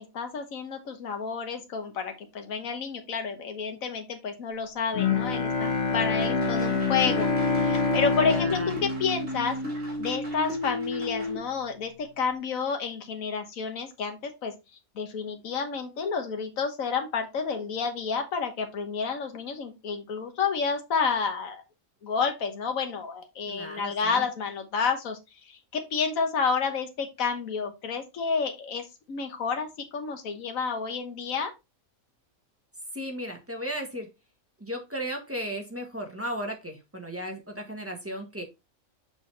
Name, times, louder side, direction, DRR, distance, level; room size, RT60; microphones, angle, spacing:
voice 1, 0.0-9.6 10.0-14.5 14.9-21.6 22.0-25.2 25.4-31.5, left 5 dB, 70° left, 5 dB, 1.6 m, -30 dB
Bowed string instrument, 4.9-10.2, left 4 dB, 50° left, 1.6 m, -27 dB
sound 1, 6.2-11.4, equal, 40° right, 2.8 m, -33 dB
voice 2, 8.2-8.7 23.5-24.2 32.9-34.1 34.6-38.4, equal, 10° right, 2 dB, 1.4 m, -35 dB
6.3 x 5.3 x 3.2 m, 0.24 s
omnidirectional pair, 1.5 m